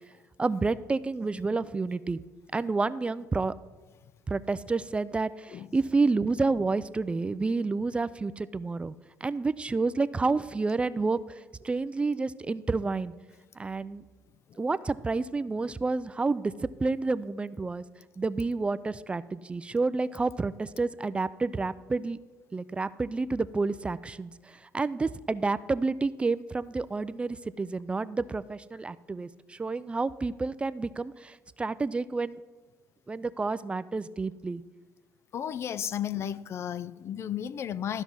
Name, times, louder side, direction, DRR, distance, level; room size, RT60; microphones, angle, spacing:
voice 1, 0.4-2.2 2.5-3.5 4.3-8.9 9.2-13.1 13.6-14.0 14.6-16.5 16.8-17.8 18.2-22.2 22.5-32.4 33.1-34.6, right 3 dB, 20° right, 0.3 m, -29 dB
voice 2, 35.3-38.0, left 9 dB, 50° left, 0.4 m, -33 dB
13.5 x 5.4 x 6.1 m
cardioid pair, 95°, 6 cm